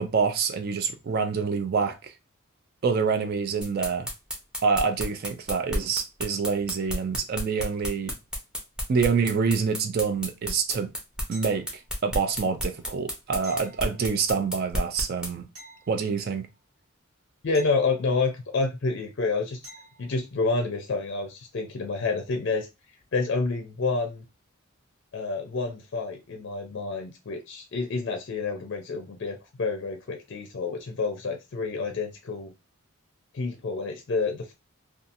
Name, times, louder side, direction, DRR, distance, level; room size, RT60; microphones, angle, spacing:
voice 1, 0.0-2.0 2.8-4.1 4.6-8.1 8.9-10.9 11.3-11.7 12.0-15.5 15.9-16.5, right 5 dB, 50° right, 0.3 m, -26 dB
sound 1, 3.6-15.3, equal, 5° right, 0.7 m, -31 dB
sound 2, 11.3-12.1 13.4-14.5 15.5-16.6 17.5-18.6 19.6-20.2 23.0-23.1, equal, 75° right, 1.5 m, -50 dB
voice 2, 17.4-19.6 20.0-22.7 23.1-24.2 25.1-32.5 33.3-34.5, left 4 dB, 55° left, 0.4 m, -29 dB
2.7 x 2.3 x 2.5 m
head